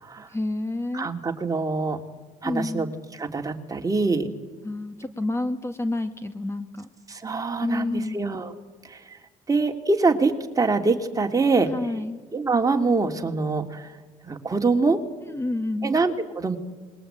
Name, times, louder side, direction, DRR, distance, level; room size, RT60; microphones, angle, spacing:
voice 1, 0.3-1.1 2.4-2.9 4.6-6.9 7.6-8.2 11.7-12.2 15.2-15.9, left 2 dB, 20° left, 10 dB, 1.8 m, -29 dB
voice 2, 0.9-2.0 2.4-2.9 3.2-4.3 7.1-8.5 8.9-9.2 9.5-11.7 12.3-13.9 14.2-15.0 15.8-16.6, right 3 dB, 25° right, 4 dB, 2.8 m, -24 dB
27.0 x 21.5 x 8.9 m, 1.3 s
supercardioid pair, 80°, 14 cm